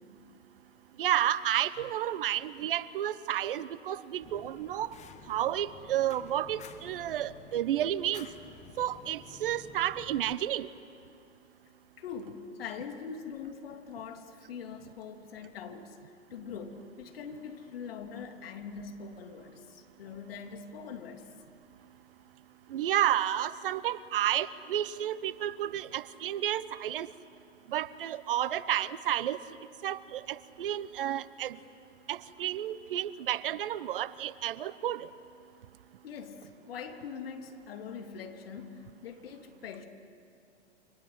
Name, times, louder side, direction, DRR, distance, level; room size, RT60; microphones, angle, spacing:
voice 1, 1.0-5.0 5.3-8.3 8.8-10.7 22.7-27.1 27.7-29.4 29.8-31.6 32.1-35.1, right 11 dB, 50° right, 0.9 m, -31 dB
Fire, 4.2-10.3, left 5 dB, 20° left, 1.6 m, -51 dB
voice 2, 12.0-21.3 36.0-39.8, left 6 dB, 55° left, 3.0 m, -43 dB
28.5 x 26.0 x 7.9 m
figure-of-eight pair, 110°, 35 cm